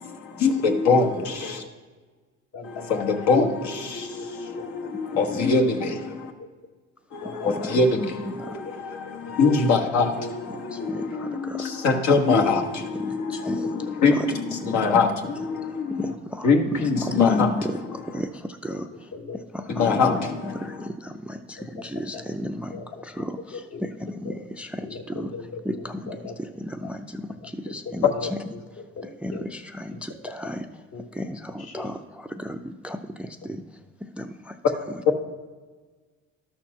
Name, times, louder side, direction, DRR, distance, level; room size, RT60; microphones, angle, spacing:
voice 1, 0.4-1.6 2.9-6.0 7.1-16.1 16.4-17.7 19.7-20.4, left 4 dB, 75° left, 2 dB, 1.4 m, -23 dB
voice 2, 2.5-3.1 4.6-4.7 5.2-5.3 7.2-7.7 9.9-10.0 13.7-13.8 14.6-14.7 15.5-15.6 17.1-17.2 19.1-19.4 20.0-20.3 21.6-22.2 22.7-23.0 23.5-23.9 24.2-24.4 24.8-26.4 26.8-26.9 27.4-27.5 27.8-28.6 29.0-29.4 29.9-30.5 30.9-31.1 31.6-31.9 33.4-33.6, left 4 dB, 55° left, 4 dB, 1.3 m, -39 dB
voice 3, 7.3-7.9 8.3-8.6 10.7-11.7 13.0-13.7 14.1-14.3 14.6-15.0 16.0-16.5 17.0-17.8 18.1-18.9 19.5-20.2 20.4-25.3 25.7-26.0 26.6-28.1 29.2-30.7 31.1-33.6 34.2-34.5, equal, 5° right, 8 dB, 0.4 m, -34 dB
12.0 x 4.4 x 5.9 m, 1.4 s
cardioid pair, 110°, 29 cm